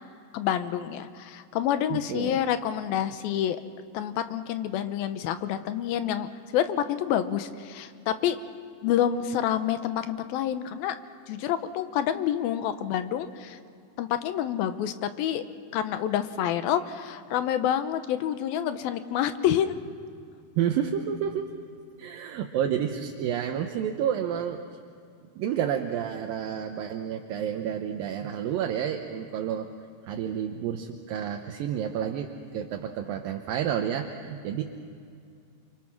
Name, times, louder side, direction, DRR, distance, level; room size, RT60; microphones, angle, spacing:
voice 1, 0.3-3.6 3.9-8.4 8.8-11.0 11.3-13.6 14.0-15.4 15.7-19.8, left 10 dB, 80° left, 10 dB, 2.7 m, -28 dB
voice 2, 1.9-2.4 20.6-21.5 22.0-24.6 25.4-29.7 30.1-34.6, right 9 dB, 75° right, 4 dB, 2.6 m, -30 dB
29.5 x 24.0 x 6.0 m, 2.4 s
omnidirectional pair, 4.4 m